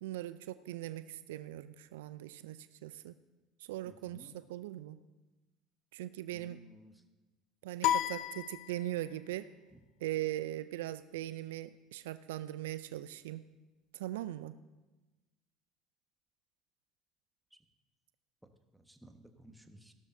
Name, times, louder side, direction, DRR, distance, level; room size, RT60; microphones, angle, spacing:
voice 1, 0.0-3.1 3.6-5.0 5.9-6.6 7.6-9.5 10.0-13.4 13.9-14.6, right 14 dB, 80° right, 14 dB, 0.3 m, -40 dB
voice 2, 3.9-4.3 6.3-6.9 18.9-19.9, right 1 dB, 5° right, 6 dB, 1.3 m, -56 dB
sound 1, 7.8-9.3, left 12 dB, 65° left, 0.5 m, -33 dB
16.5 x 12.5 x 2.7 m, 1.1 s
hypercardioid pair, 70°, 0 cm